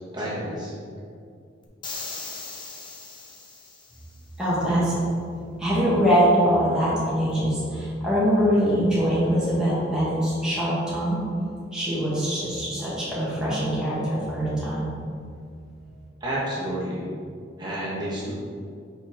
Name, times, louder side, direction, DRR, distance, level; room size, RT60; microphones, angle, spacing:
voice 1, 0.1-0.7 16.2-17.0 17.6-18.3, right 1 dB, 25° right, -7 dB, 1.4 m, -30 dB
sound 1, 1.8-4.1, left 3 dB, 25° left, 0.7 m, -38 dB
voice 2, 4.4-5.0 5.6-11.2 11.7-14.9, equal, 5° right, -9 dB, 1.3 m, -23 dB
5.3 x 5.1 x 3.5 m, 2.3 s
head